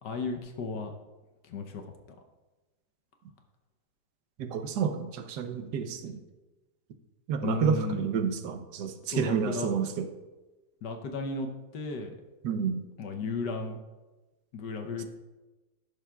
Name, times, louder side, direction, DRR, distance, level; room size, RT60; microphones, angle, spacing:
voice 1, 0.0-0.9 1.4-1.8 7.4-8.0 9.1-9.7 10.8-11.5 11.7-12.1 13.0-13.8 14.5-15.0, left 4 dB, 65° left, 4 dB, 1.3 m, -34 dB
voice 2, 4.4-6.2 7.3-10.1 12.4-12.8 15.0-15.1, right 6 dB, 65° right, 7 dB, 1.2 m, -30 dB
14.0 x 6.8 x 2.3 m, 1.2 s
omnidirectional pair, 2.1 m